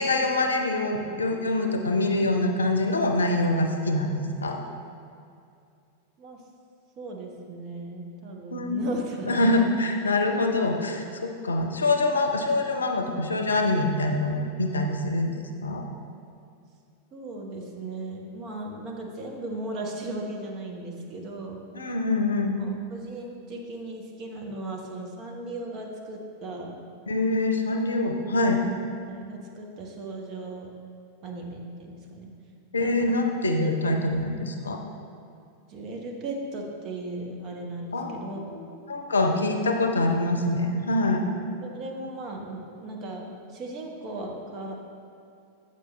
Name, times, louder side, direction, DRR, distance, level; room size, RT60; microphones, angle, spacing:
voice 1, 0.0-4.6 8.5-8.8 9.3-15.3 15.6-15.8 21.7-22.6 27.1-28.6 32.7-34.8 37.9-38.2 38.9-41.2, left 2 dB, 75° left, 4 dB, 0.6 m, -25 dB
voice 2, 7.0-9.7 17.1-21.6 22.6-26.7 29.1-30.7 31.2-32.3 32.8-33.1 33.6-33.9 35.7-38.6 41.6-44.8, right 2 dB, 35° right, 0 dB, 1.0 m, -37 dB
7.9 x 5.4 x 3.3 m, 2.4 s
figure-of-eight pair, 90°, 0 cm